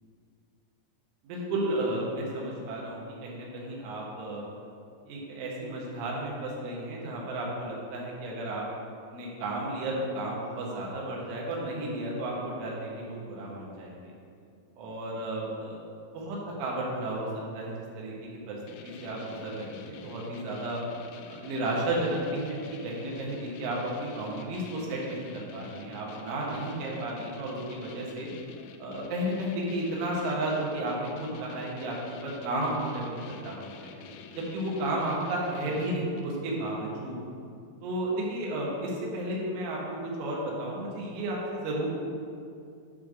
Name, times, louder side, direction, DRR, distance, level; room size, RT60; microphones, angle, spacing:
voice 1, 1.2-4.5 5.1-8.6 9.1-14.1 14.8-15.8 16.1-17.3 17.5-18.6 18.8-20.8 21.3-28.3 28.8-33.2 33.4-34.0 34.4-37.2 37.8-41.9, right 1 dB, 75° right, -3 dB, 3.6 m, -33 dB
sound 1, 18.7-36.4, left 5 dB, 85° left, 3.0 m, -48 dB
10.0 x 3.4 x 6.1 m, 2.4 s
omnidirectional pair, 6.0 m